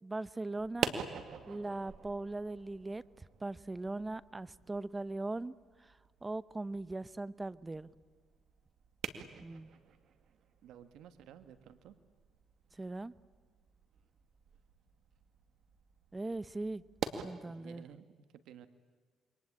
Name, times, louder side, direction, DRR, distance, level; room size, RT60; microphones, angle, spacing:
voice 1, 0.0-0.9 1.5-5.5 5.8-7.9 9.4-9.7 12.7-13.1 16.1-16.8 17.2-17.8, right 2 dB, 20° right, 17 dB, 0.9 m, -40 dB
sound 1, 0.6-17.3, right 7 dB, 70° right, 2.2 m, -46 dB
voice 2, 10.6-12.0 17.4-18.7, right 9 dB, 85° right, 10 dB, 1.5 m, -54 dB
28.0 x 23.5 x 8.7 m, 1.6 s
cardioid pair, 90°, 0 cm